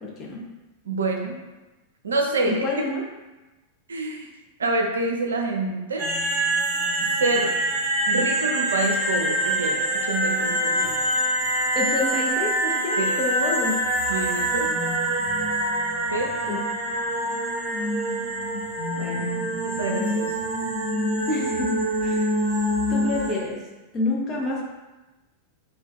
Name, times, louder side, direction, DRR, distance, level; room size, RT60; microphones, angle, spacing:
voice 1, 0.0-0.4 2.5-3.0 11.7-13.8 16.5-16.6 19.0-19.3 21.3-21.7 22.0-22.3 22.9-23.6 23.9-24.6, left 2 dB, 25° left, -3 dB, 0.7 m, -28 dB
voice 2, 0.9-1.4 2.0-2.6 3.9-4.3 4.6-6.1 7.0-7.5 8.1-11.0 13.0-13.1 14.1-14.7 16.1-16.3 19.6-20.3, right 2 dB, 70° right, 2 dB, 0.4 m, -27 dB
sound 1, 6.0-23.3, right 1 dB, 35° right, 0.8 m, -25 dB
2.3 x 2.2 x 3.8 m, 1.1 s
figure-of-eight pair, 90°, 0 cm